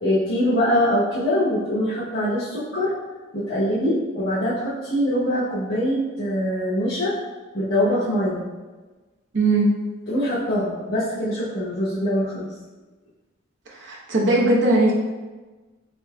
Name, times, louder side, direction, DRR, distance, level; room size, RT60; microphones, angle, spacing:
voice 1, 0.0-2.9 3.3-7.1 7.5-8.4 10.1-12.5, equal, 70° left, -11 dB, 0.9 m, -23 dB
voice 2, 9.3-9.7 13.8-14.9, right 2 dB, 65° right, -2 dB, 0.7 m, -19 dB
3.9 x 3.6 x 2.2 m, 1.3 s
head